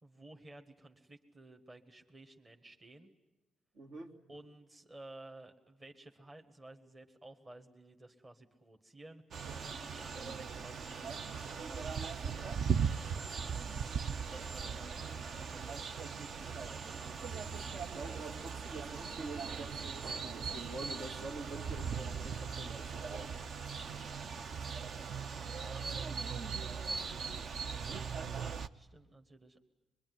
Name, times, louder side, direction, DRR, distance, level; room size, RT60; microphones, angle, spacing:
voice 1, 0.0-3.1 4.3-13.3 14.3-17.2 25.4-25.9 27.7-29.6, right 2 dB, 25° right, 5 dB, 1.7 m, -55 dB
voice 2, 3.7-4.1 17.8-23.3, right 2 dB, 75° right, 0 dB, 3.2 m, -46 dB
sound 1, 9.3-28.7, right 6 dB, 55° right, 0.8 m, -39 dB
24.5 x 22.5 x 9.7 m, 1.1 s
cardioid pair, 90°, 0 cm